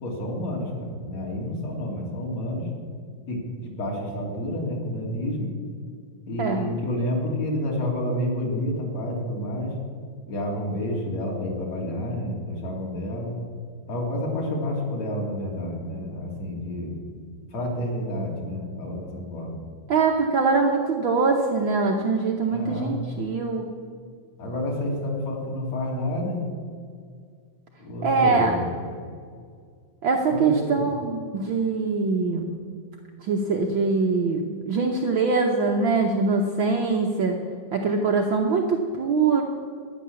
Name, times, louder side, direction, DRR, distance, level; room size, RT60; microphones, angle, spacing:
voice 1, 0.0-2.7 3.3-5.6 6.3-9.7 10.3-13.4 13.9-17.0 17.5-19.6 22.5-23.0 24.4-26.4 27.8-28.9 30.3-30.9, left 1 dB, 55° left, -2 dB, 3.7 m, -29 dB
voice 2, 6.4-6.7 19.9-23.7 28.0-28.5 30.0-32.5 33.2-37.4 37.7-39.4, right 4 dB, 85° right, 1 dB, 1.0 m, -23 dB
13.5 x 10.0 x 6.9 m, 2.1 s
omnidirectional pair, 3.6 m